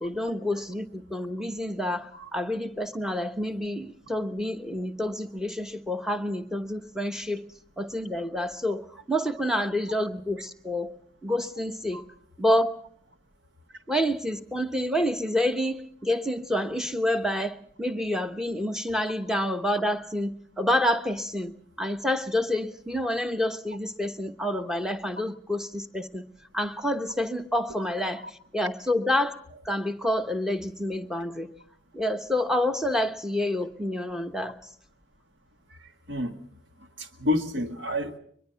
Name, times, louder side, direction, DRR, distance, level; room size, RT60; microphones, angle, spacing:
voice 1, 0.0-7.4 7.8-10.9 11.2-12.0 12.4-12.8 13.9-26.2 26.5-29.3 29.6-31.5 31.9-34.6, left 1 dB, 5° right, 7 dB, 1.0 m, -28 dB
voice 2, 35.8-36.4 36.8-38.2, left 1 dB, 65° right, 6 dB, 1.9 m, -30 dB
22.5 x 22.5 x 5.8 m, 0.64 s
head